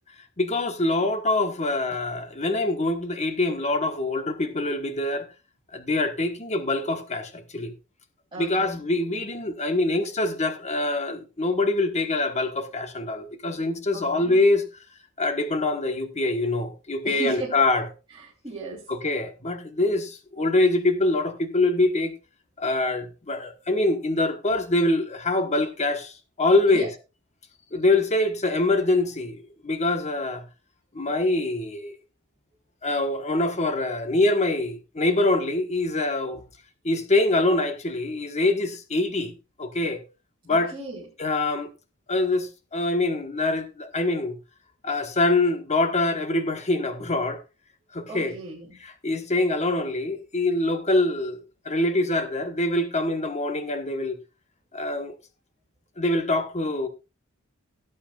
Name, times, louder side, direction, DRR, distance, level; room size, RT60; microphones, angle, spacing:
voice 1, 0.4-5.3 5.7-7.7 8.4-14.6 15.2-17.9 18.9-22.1 22.6-26.9 27.7-30.4 30.9-32.0 32.8-36.4 36.8-40.0 40.5-40.7 41.2-41.7 42.1-44.3 44.8-47.4 47.9-48.3 48.8-54.2 54.7-55.1 56.0-56.9, left 2 dB, 35° left, 1.3 m, -24 dB
voice 2, 8.3-8.8 13.9-14.4 17.0-17.5 18.2-18.9 26.6-26.9 40.5-41.0 48.1-48.8, right 2 dB, 25° right, 3.3 m, -37 dB
17.5 x 8.5 x 2.4 m
head